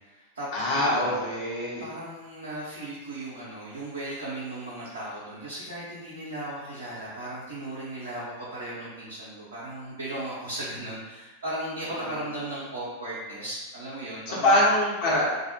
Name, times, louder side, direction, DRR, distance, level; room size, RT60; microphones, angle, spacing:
voice 1, 0.0-0.5 0.7-1.1 1.8-14.6, right 1 dB, 75° right, -10 dB, 0.7 m, -36 dB
voice 2, 0.5-1.8 14.3-15.2, left 1 dB, 45° left, -6 dB, 0.9 m, -23 dB
2.5 x 2.0 x 2.7 m, 1.2 s
figure-of-eight pair, 90°, 0 cm